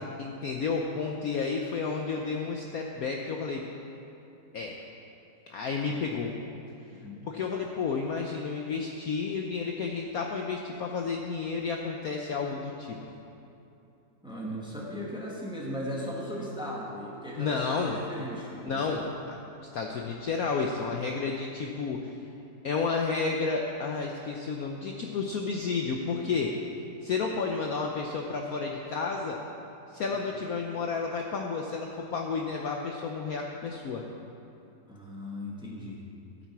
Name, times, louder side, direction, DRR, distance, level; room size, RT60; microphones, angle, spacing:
voice 1, 0.0-3.6 4.5-4.8 5.5-6.3 7.3-13.0 17.4-18.0 18.6-22.1 22.6-26.5 27.0-29.4 29.9-34.0, left 4 dB, 60° left, 1 dB, 1.0 m, -31 dB
voice 2, 6.9-7.3 14.2-18.8 30.1-30.3 34.9-36.0, equal, 5° right, -4 dB, 1.6 m, -37 dB
15.0 x 8.5 x 4.7 m, 2.8 s
omnidirectional pair, 2.0 m